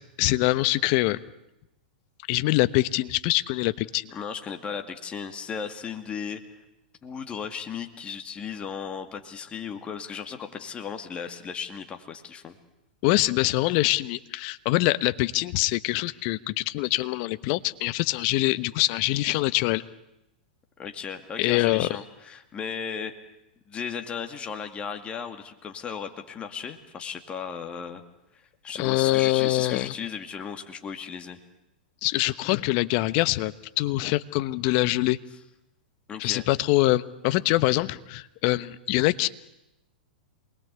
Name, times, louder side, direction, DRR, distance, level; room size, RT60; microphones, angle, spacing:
voice 1, 0.2-1.2 2.3-4.1 13.0-19.8 21.4-21.9 28.8-29.9 32.0-35.2 36.2-39.3, left 19 dB, 45° left, 14 dB, 1.1 m, -24 dB
voice 2, 4.1-6.4 7.0-12.6 20.8-23.1 23.7-28.0 28.6-31.4 36.1-36.4, left 6 dB, 20° left, 5 dB, 2.3 m, -36 dB
28.0 x 21.5 x 8.3 m, 0.90 s
hypercardioid pair, 110°, 5 cm